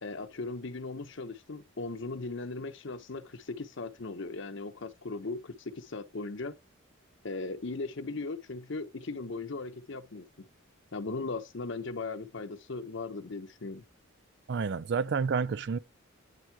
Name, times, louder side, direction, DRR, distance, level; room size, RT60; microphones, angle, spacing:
voice 1, 0.0-6.6 7.2-10.5 10.9-13.8, left 3 dB, 60° left, 0.8 m, -38 dB
voice 2, 14.5-15.8, right 5 dB, 55° right, 0.4 m, -29 dB
9.2 x 3.6 x 4.6 m
head